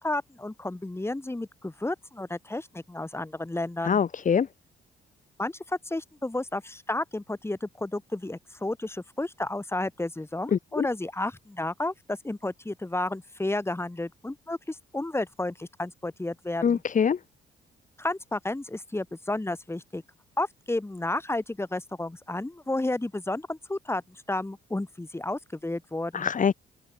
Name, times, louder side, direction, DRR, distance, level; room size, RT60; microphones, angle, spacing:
voice 1, 0.0-4.0 5.4-16.8 18.0-20.0 20.4-26.3, left 2 dB, 10° left, 7.4 m, -32 dB
voice 2, 3.9-4.5 10.5-10.8 16.6-17.2 26.1-26.5, left 7 dB, 40° left, 1.3 m, -24 dB
open air
cardioid pair, 90°, 20 cm